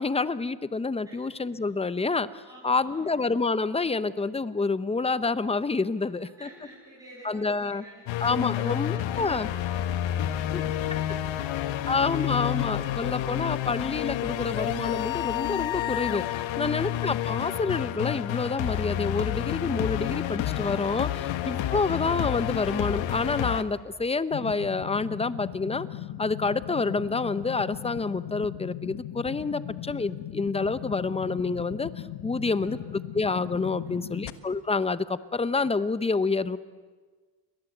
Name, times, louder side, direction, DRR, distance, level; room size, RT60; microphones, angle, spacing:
voice 1, 0.0-6.5 7.2-7.8 8.2-9.5 10.5-10.6 11.9-21.1 21.5-25.9 26.2-31.9 32.2-32.8 33.1-36.6, left 4 dB, 15° left, 15 dB, 0.7 m, -28 dB
voice 2, 2.4-3.1 6.0-12.5 16.4-16.8 21.2-21.6 32.3-33.0 33.8-34.3, equal, 10° right, -6 dB, 7.7 m, -51 dB
sound 1, 8.1-23.6, left 12 dB, 75° left, 1.4 m, -29 dB
sound 2, 24.3-34.3, left 13 dB, 60° left, 1.5 m, -38 dB
29.5 x 24.0 x 8.0 m, 1.4 s
cardioid pair, 135°, 46 cm